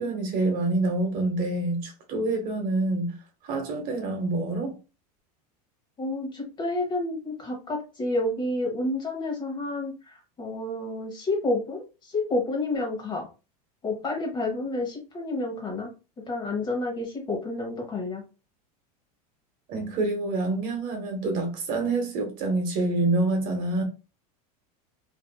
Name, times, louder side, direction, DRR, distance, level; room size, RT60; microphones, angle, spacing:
voice 1, 0.0-3.2 3.4-4.8 19.7-23.8, right 2 dB, 45° right, 1.0 m, -27 dB
voice 2, 6.0-13.3 13.8-15.9 16.3-18.2, left 2 dB, 25° left, 1.0 m, -30 dB
2.7 x 2.4 x 2.2 m
supercardioid pair, 130°, 19 cm